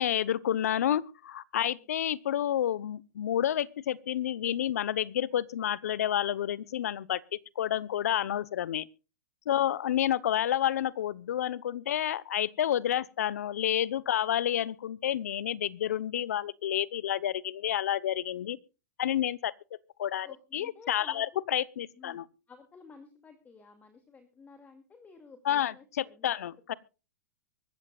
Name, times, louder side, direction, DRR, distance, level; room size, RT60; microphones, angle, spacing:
voice 1, 0.0-7.2 7.6-8.9 9.5-18.6 19.0-19.5 20.0-22.3 25.4-26.7, left 11 dB, 70° left, 0.9 m, -29 dB
voice 2, 20.2-21.5 22.0-22.2 22.5-26.8, left 5 dB, 20° left, 2.3 m, -53 dB
24.0 x 13.5 x 2.4 m
hypercardioid pair, 115°, 9 cm